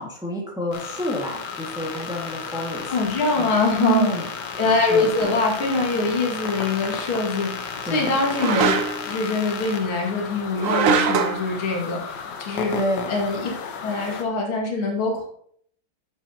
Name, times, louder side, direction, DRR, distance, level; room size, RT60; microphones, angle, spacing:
voice 1, 0.0-2.9 3.4-4.2 4.9-5.3 7.9-8.1 12.7-13.1, equal, ahead, -2 dB, 1.6 m, -28 dB
sound 1, 0.7-14.2, left 6 dB, 60° left, 1.5 m, -33 dB
voice 2, 2.9-4.1 4.6-8.7 9.0-12.7 13.1-13.5 13.8-15.2, left 3 dB, 80° left, -2 dB, 2.9 m, -24 dB
sound 2, 5.2-5.4 8.3-9.1 10.6-11.4, right 5 dB, 80° right, 0.7 m, -22 dB
10.5 x 7.0 x 2.9 m, 0.64 s
omnidirectional pair, 2.3 m